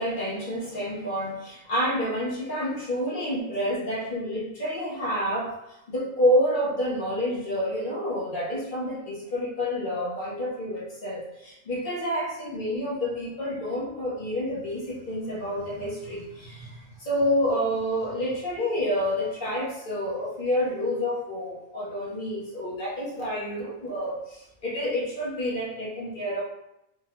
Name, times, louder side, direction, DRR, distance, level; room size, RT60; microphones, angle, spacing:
voice 1, 0.0-5.6 5.9-26.4, equal, 45° left, -6 dB, 0.9 m, -28 dB
3.5 x 2.2 x 3.0 m, 0.86 s
omnidirectional pair, 1.5 m